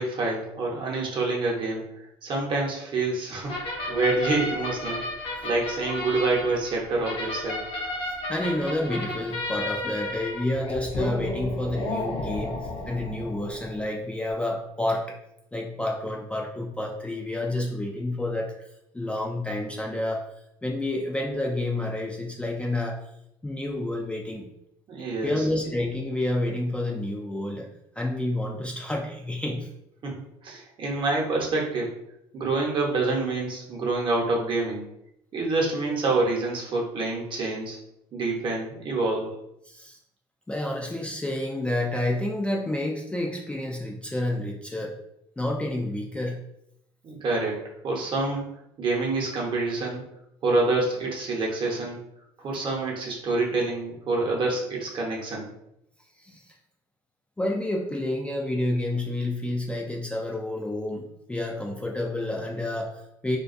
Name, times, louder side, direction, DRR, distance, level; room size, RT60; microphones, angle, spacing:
voice 1, 0.0-1.8 2.2-5.0 5.4-7.6 24.9-25.5 30.0-31.9 32.3-34.8 35.3-37.8 38.1-39.3 47.0-48.4 48.8-50.0 50.4-52.0 52.4-55.5, right 3 dB, 45° right, -2 dB, 0.8 m, -27 dB
sound 1, 3.5-13.8, left 2 dB, 50° left, 0.7 m, -33 dB
voice 2, 8.1-15.2 15.5-18.7 18.9-20.2 20.6-23.0 23.4-24.5 25.2-27.7 28.0-29.7 39.6-40.0 40.5-45.0 45.4-46.4 56.2-56.5 57.4-63.4, left 1 dB, 10° left, -1 dB, 0.3 m, -29 dB
2.3 x 2.2 x 2.5 m, 0.82 s
supercardioid pair, 80°, 12 cm